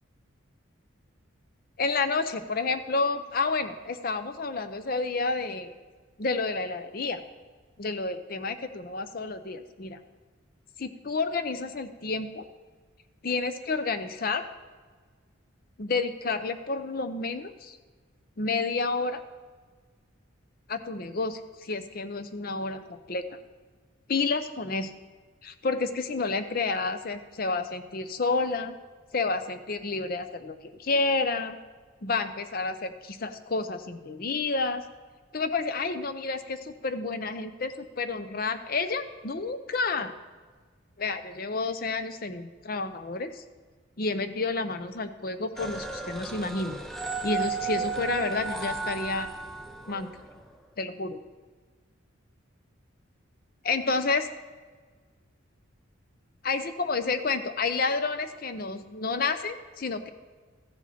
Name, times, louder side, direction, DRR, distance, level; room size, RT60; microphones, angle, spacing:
voice 1, 1.8-5.7 6.2-7.2 7.8-10.0 10.8-12.4 13.2-14.4 15.8-17.8 18.4-19.2 20.7-23.4 24.1-24.9 25.4-28.8 29.1-31.6 32.0-34.8 35.3-40.1 41.0-43.4 44.0-46.8 47.2-49.3 49.9-50.1 50.8-51.2 53.6-54.3 56.4-60.1, left 3 dB, 45° left, 10 dB, 0.6 m, -30 dB
sound 1, 45.6-50.4, right 4 dB, ahead, 0.6 m, -34 dB
14.0 x 7.3 x 4.2 m, 1.5 s
head